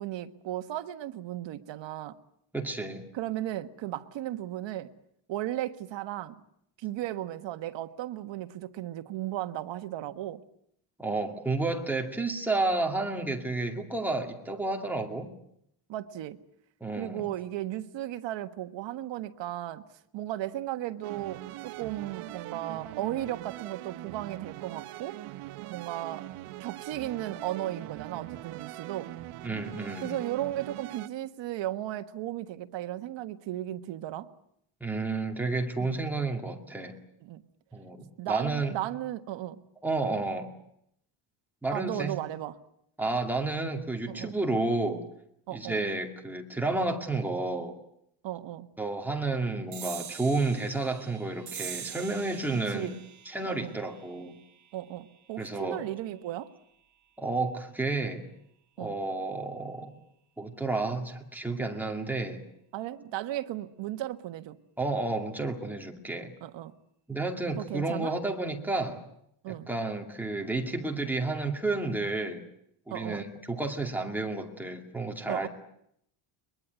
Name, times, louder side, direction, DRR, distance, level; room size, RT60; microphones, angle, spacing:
voice 1, 0.0-2.2 3.1-4.9 5.3-6.4 6.8-10.4 15.9-16.4 17.0-19.8 20.1-25.2 25.7-26.3 26.6-29.1 30.0-34.3 35.8-36.0 37.2-37.4 38.2-39.6 41.7-42.6 44.1-44.3 45.5-45.8 48.2-48.7 52.7-53.0 53.4-53.8 54.7-56.5 58.8-59.0 62.7-64.6 66.4-66.7 67.6-68.1 69.4-69.7 72.9-73.2 75.3-75.5, right 13 dB, 60° right, 9 dB, 1.5 m, -35 dB
voice 2, 2.5-3.0 11.0-15.3 16.8-17.2 29.4-30.2 34.8-37.0 37.7-38.7 39.8-40.5 41.6-42.2 43.0-45.0 45.5-47.8 48.8-52.9 53.3-54.4 55.4-55.8 57.2-58.2 58.8-60.0 60.4-62.4 64.8-66.3 67.1-69.0 69.5-72.4 72.9-75.5, right 3 dB, 5° right, 2 dB, 2.3 m, -31 dB
sound 1, 21.0-31.1, right 16 dB, 85° right, 1.2 m, -42 dB
sound 2, 49.7-56.6, right 9 dB, 35° right, 1.2 m, -45 dB
22.5 x 22.0 x 9.4 m, 0.73 s
cardioid pair, 180°, 50 cm